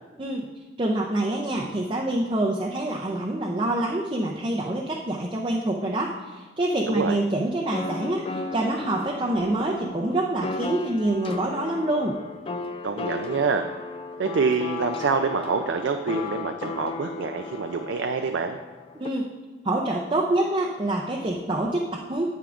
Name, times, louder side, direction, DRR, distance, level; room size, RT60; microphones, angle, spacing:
voice 1, 0.8-12.2 18.9-19.2 19.6-22.3, right 1 dB, 25° right, -1 dB, 0.5 m, -26 dB
voice 2, 6.9-7.2 12.8-13.6 14.2-18.6, right 5 dB, 80° right, 6 dB, 0.4 m, -26 dB
sound 1, 7.7-19.1, left 3 dB, 30° left, 0.3 m, -35 dB
9.3 x 8.1 x 2.5 m, 1.3 s
head